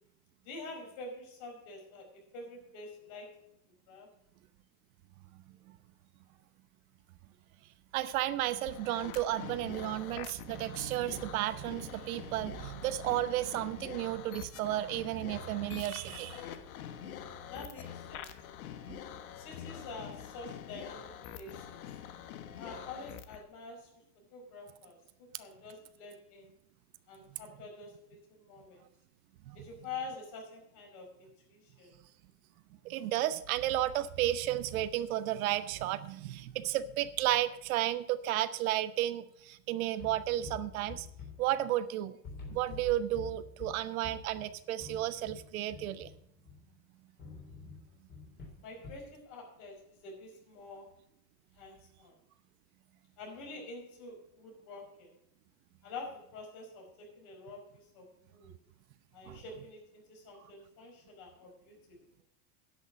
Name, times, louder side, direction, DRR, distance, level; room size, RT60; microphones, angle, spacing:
voice 1, 0.4-3.4 3.9-4.1 17.5-18.3 19.3-21.8 22.6-23.9 24.3-26.5 27.1-28.8 29.5-31.9 48.6-51.0 51.6-52.1 53.2-55.2 55.8-58.5 59.1-62.0, left 3 dB, 45° left, 1 dB, 4.9 m, -47 dB
voice 2, 7.9-16.5 27.3-27.4 29.5-29.6 32.8-41.1 41.4-42.2 42.5-46.1 59.3-59.4, right 13 dB, 70° right, 13 dB, 0.9 m, -33 dB
sound 1, 8.6-23.4, left 9 dB, 75° left, 1.3 m, -46 dB
sound 2, 40.0-41.9 42.2-46.7 47.2-49.1, left 4 dB, 25° left, 3.5 m, -48 dB
10.5 x 6.4 x 8.1 m, 0.71 s
supercardioid pair, 155°, 43 cm